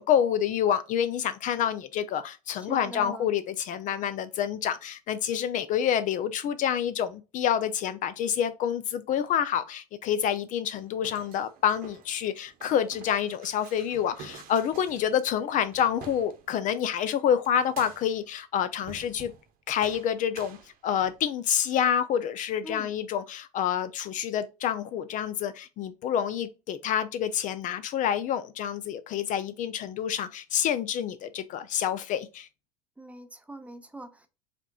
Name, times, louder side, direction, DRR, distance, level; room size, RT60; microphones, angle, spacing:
voice 1, 0.0-19.3 19.7-20.6 20.8-32.5, left 9 dB, 40° left, 0.4 m, -28 dB
voice 2, 2.5-3.3 22.6-22.9 33.0-34.3, right 2 dB, 5° right, 0.7 m, -43 dB
sound 1, 10.8-16.8 17.5-18.3 18.8-19.5 19.8-21.3, right 6 dB, 45° right, 0.9 m, -49 dB
5.0 x 2.9 x 2.3 m
hypercardioid pair, 80°, 20 cm